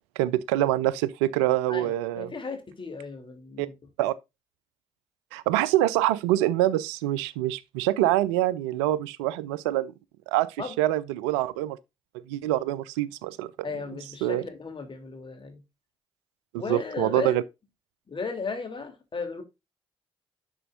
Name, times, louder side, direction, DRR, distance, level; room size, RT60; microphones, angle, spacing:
voice 1, 0.2-2.3 3.6-3.7 4.0-4.1 5.3-9.9 10.3-11.8 12.3-13.5 14.2-14.4 16.5-17.4, right 14 dB, 70° right, 0.5 m, -25 dB
voice 2, 1.7-3.7 10.6-10.7 13.6-15.6 16.6-17.4 18.1-19.4, left 4 dB, 35° left, 3.1 m, -35 dB
11.0 x 6.3 x 2.5 m
figure-of-eight pair, 40°, 15 cm